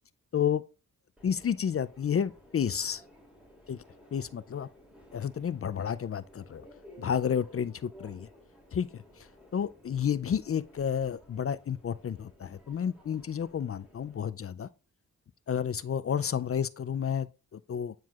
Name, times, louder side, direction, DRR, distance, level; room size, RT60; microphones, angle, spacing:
voice 1, 1.2-3.0 3.7-3.8 4.1-4.7 5.1-6.7 7.0-8.3 8.7-14.7 15.5-17.9, left 8 dB, 40° left, 0.4 m, -31 dB
Subway metro underground, 1.2-14.3, equal, 5° right, 2.7 m, -56 dB
9.2 x 4.6 x 2.4 m
cardioid pair, 60°, 35 cm